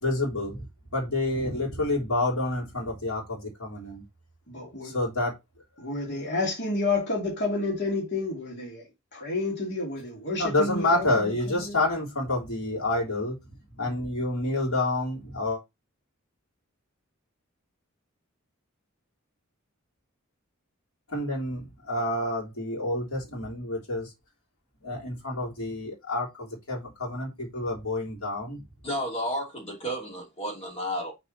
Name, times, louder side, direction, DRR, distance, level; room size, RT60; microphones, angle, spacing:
voice 1, 0.0-0.6 0.9-4.0 4.8-5.3 10.4-13.3 13.8-15.6 21.1-24.1 24.8-28.6, left 2 dB, 90° left, 3.4 m, -28 dB
voice 2, 4.5-4.9 5.8-8.9 9.1-11.8, left 3 dB, 55° left, 2.7 m, -30 dB
voice 3, 28.8-31.1, equal, 30° left, 2.8 m, -32 dB
6.4 x 4.1 x 4.1 m
head